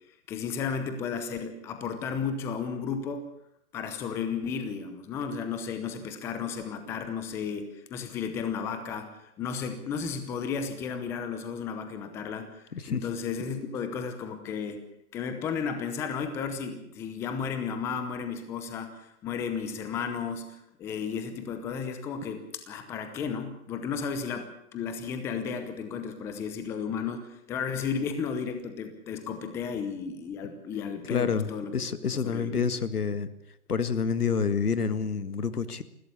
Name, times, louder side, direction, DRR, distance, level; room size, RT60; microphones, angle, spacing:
voice 1, 0.3-3.3 3.7-14.8 15.1-31.8 32.1-32.7, left 6 dB, 5° left, 8 dB, 0.8 m, -33 dB
voice 2, 12.7-13.0 31.1-33.3 33.7-35.8, left 5 dB, 85° left, 13 dB, 2.0 m, -28 dB
20.5 x 16.5 x 8.4 m, 0.78 s
hypercardioid pair, 155°, 44 cm